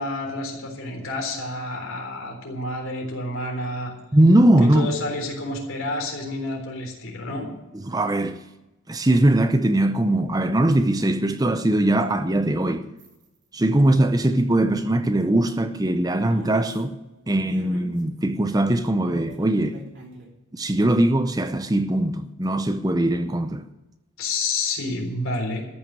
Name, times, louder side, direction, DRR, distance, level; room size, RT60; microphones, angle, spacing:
voice 1, 0.0-3.9 4.6-7.5 24.2-25.6, left 2 dB, 80° left, 3.7 m, -29 dB
voice 2, 4.1-4.9 7.8-8.4 8.9-12.9 13.5-16.9 17.3-19.8 20.5-23.7, right 1 dB, 20° right, 0.6 m, -20 dB
sound 1, 13.0-13.3 14.3-14.5 16.3-16.8 17.4-18.0 19.1-20.3, right 1 dB, 55° right, 3.2 m, -41 dB
14.0 x 6.2 x 9.7 m
head